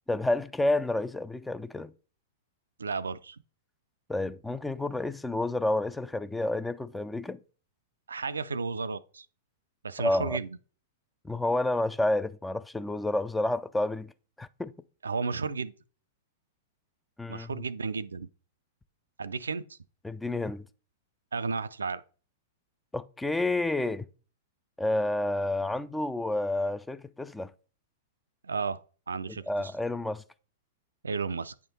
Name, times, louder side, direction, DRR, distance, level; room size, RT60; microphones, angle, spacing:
voice 1, 0.1-1.9 4.1-7.4 10.0-10.4 11.2-14.1 14.4-14.7 17.2-17.6 20.0-20.7 22.9-24.1 24.8-27.5 29.5-30.2, left 2 dB, 5° left, 0.4 m, -29 dB
voice 2, 2.8-3.4 8.1-9.3 9.8-10.6 15.0-15.7 17.3-18.3 19.2-19.8 21.3-22.0 28.4-29.7 31.0-31.5, right 4 dB, 85° right, 0.3 m, -33 dB
8.8 x 3.6 x 3.9 m
hypercardioid pair, 105°, 0 cm